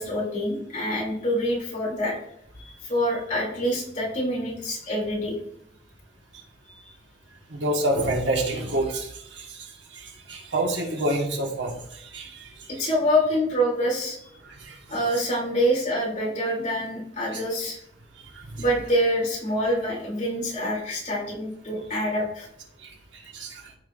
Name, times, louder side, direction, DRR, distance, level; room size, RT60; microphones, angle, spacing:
voice 1, 0.0-2.2 2.6-5.4 6.8-6.9 12.7-14.2 14.9-17.8 18.6-22.5, equal, 40° left, -4 dB, 3.0 m, -26 dB
voice 2, 7.5-9.7 9.9-12.7 14.5-14.8 17.3-17.4 18.3-18.6 22.8-23.6, right 1 dB, 80° right, 1 dB, 1.6 m, -28 dB
13.5 x 5.4 x 2.6 m, 0.74 s
head